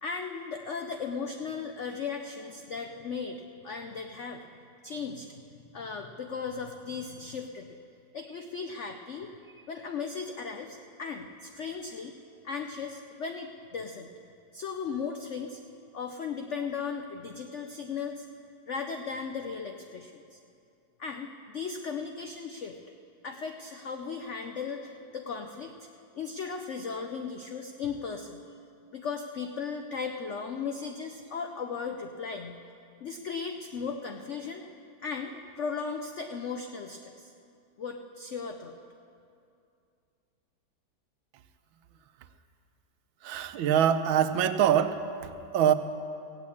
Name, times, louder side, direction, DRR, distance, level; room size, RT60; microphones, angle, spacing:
voice 1, 0.0-4.4 4.8-5.3 5.7-7.8 8.1-12.1 12.4-14.1 14.5-15.6 15.9-18.3 18.7-20.4 21.0-22.7 23.2-25.7 26.1-28.4 28.9-32.6 33.0-34.6 35.0-37.3 37.8-38.8, left 5 dB, 80° left, 5 dB, 0.6 m, -36 dB
voice 2, 43.2-45.0 45.5-45.7, right 9 dB, 85° right, 10 dB, 1.5 m, -23 dB
16.0 x 8.4 x 8.5 m, 2.5 s
omnidirectional pair, 2.1 m